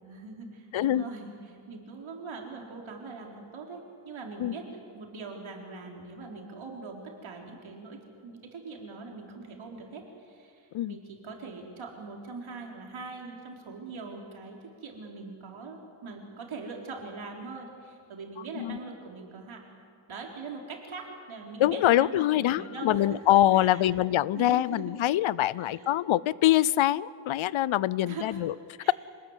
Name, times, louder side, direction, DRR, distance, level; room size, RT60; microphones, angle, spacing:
voice 1, 0.0-19.6 20.1-23.9 24.3-25.0 25.5-25.9 28.0-28.4 28.8-28.9, right 4 dB, 75° right, 1 dB, 4.3 m, -42 dB
voice 2, 0.7-1.0 4.4-4.5 10.7-11.0 18.6-18.8 21.6-28.5, left 13 dB, 80° left, 21 dB, 0.6 m, -24 dB
27.0 x 19.5 x 8.2 m, 2.3 s
wide cardioid pair, 135°, 47 cm